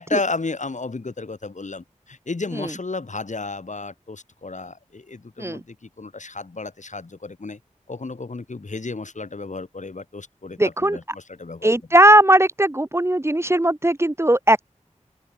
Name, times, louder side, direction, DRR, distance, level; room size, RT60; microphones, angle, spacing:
voice 1, 0.0-7.6 7.9-11.7, left 3 dB, 70° left, 6.4 m, -32 dB
voice 2, 10.6-11.0 11.6-14.6, right 1 dB, 20° right, 1.2 m, -18 dB
open air
wide cardioid pair, 50°, 13 cm